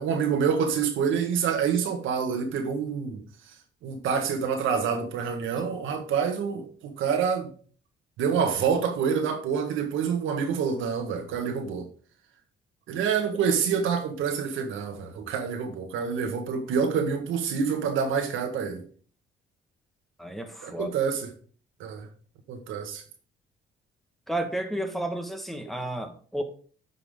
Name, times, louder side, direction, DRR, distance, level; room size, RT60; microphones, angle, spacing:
voice 1, 0.0-3.2 3.8-7.5 8.2-11.9 12.9-18.8 20.6-21.3 21.8-22.1 22.5-23.0, right 6 dB, 90° right, 1.6 m, -27 dB
voice 2, 20.2-20.9 24.3-26.4, right 1 dB, ahead, 1.4 m, -32 dB
9.2 x 5.7 x 3.7 m
cardioid pair, 90°, 20 cm